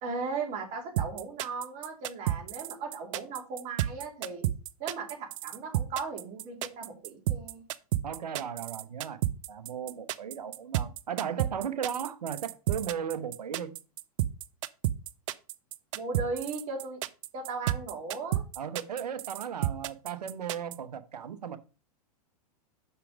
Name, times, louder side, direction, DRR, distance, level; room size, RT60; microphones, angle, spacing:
voice 1, 0.0-4.4 4.8-7.6 15.9-17.0 17.3-18.4, right 4 dB, 40° right, 2.6 m, -37 dB
sound 1, 1.0-20.8, right 13 dB, 55° right, 0.6 m, -31 dB
voice 2, 8.0-9.2 9.5-13.7 18.6-21.6, right 8 dB, 85° right, 1.0 m, -36 dB
6.1 x 5.8 x 5.1 m
hypercardioid pair, 120°, 20 cm